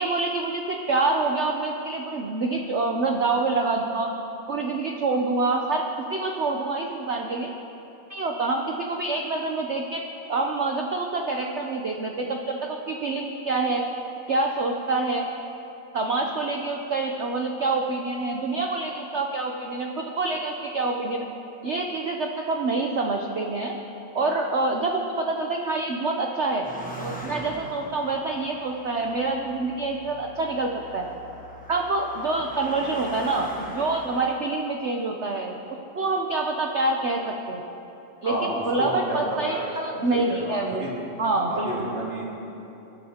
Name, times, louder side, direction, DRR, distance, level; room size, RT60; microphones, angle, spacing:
voice 1, 0.0-4.1 4.5-7.5 8.1-10.0 10.3-13.8 14.3-15.3 15.9-21.3 21.6-23.7 24.1-31.1 31.7-35.6 35.9-37.6 38.2-40.9 41.2-41.8, right 3 dB, 75° right, 2 dB, 0.6 m, -26 dB
Car passing by, 26.6-34.3, equal, 10° left, 0.6 m, -41 dB
voice 2, 38.2-40.9 41.5-42.3, right 1 dB, 30° right, -5 dB, 2.6 m, -31 dB
22.0 x 11.5 x 2.9 m, 3.0 s
omnidirectional pair, 2.2 m